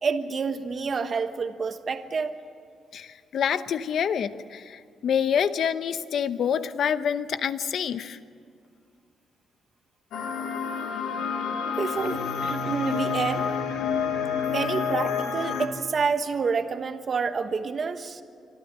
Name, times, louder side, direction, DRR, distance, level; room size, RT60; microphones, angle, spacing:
voice 1, 0.0-2.4 11.6-13.5 14.5-18.2, right 5 dB, 40° right, 8 dB, 1.2 m, -28 dB
voice 2, 2.9-8.2, left 8 dB, 60° left, 12 dB, 0.9 m, -27 dB
sound 1, 10.1-15.7, left 6 dB, 85° left, 1.7 m, -28 dB
25.0 x 13.5 x 8.8 m, 2.3 s
cardioid pair, 125°, 0 cm